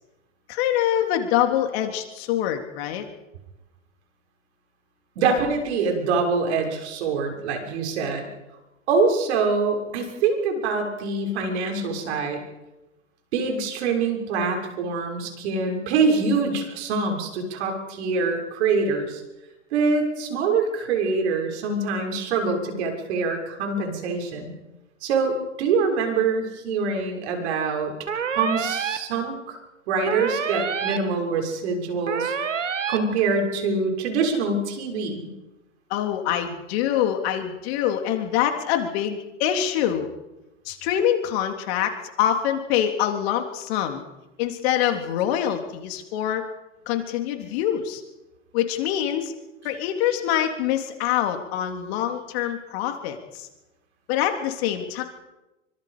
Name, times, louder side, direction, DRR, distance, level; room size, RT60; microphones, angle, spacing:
voice 1, 0.5-3.1 35.9-40.1 40.7-44.0 44.4-46.4 46.9-48.0 48.5-49.3 49.6-53.5 54.1-55.0, left 10 dB, 55° left, 5 dB, 3.5 m, -25 dB
voice 2, 5.1-8.3 8.9-12.4 13.3-19.2 19.7-24.5 25.0-27.9 28.3-29.6 29.9-32.3 32.9-35.3 47.4-47.5, right 4 dB, 65° right, 3 dB, 6.5 m, -24 dB
sound 1, 28.1-29.0 30.1-31.0 32.1-33.0, right 7 dB, 85° right, 2.2 m, -27 dB
26.5 x 24.5 x 5.2 m, 1.0 s
hypercardioid pair, 100°, 36 cm